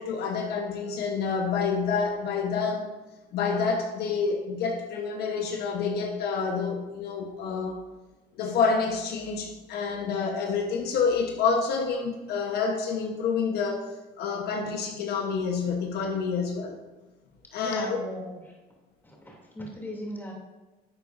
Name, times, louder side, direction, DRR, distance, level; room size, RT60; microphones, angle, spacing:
voice 1, 0.0-2.9 3.3-7.8 8.3-13.9 14.2-16.8 17.5-18.0, left 5 dB, 75° left, 1.1 m, -28 dB
voice 2, 17.6-18.4 19.0-20.3, equal, 10° left, 2.8 m, -38 dB
11.0 x 8.0 x 2.6 m
cardioid pair, 110°, 17 cm